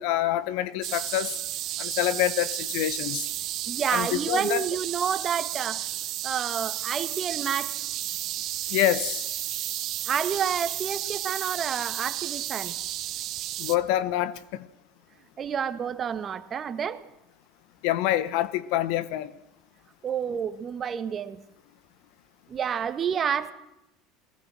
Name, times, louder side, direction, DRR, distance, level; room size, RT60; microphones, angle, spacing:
voice 1, 0.0-1.4 1.8-3.3 3.9-4.6 8.7-9.3 13.6-14.7 17.8-19.3, left 13 dB, 70° left, 16 dB, 1.4 m, -26 dB
sound 1, 0.8-13.8, right 13 dB, 55° right, 1.4 m, -32 dB
voice 2, 3.7-5.8 6.2-7.9 10.1-12.7 15.4-17.0 20.0-21.4 22.5-23.5, right 7 dB, 35° right, 11 dB, 1.9 m, -29 dB
22.5 x 19.0 x 6.3 m, 0.90 s
hypercardioid pair, 90°, 0 cm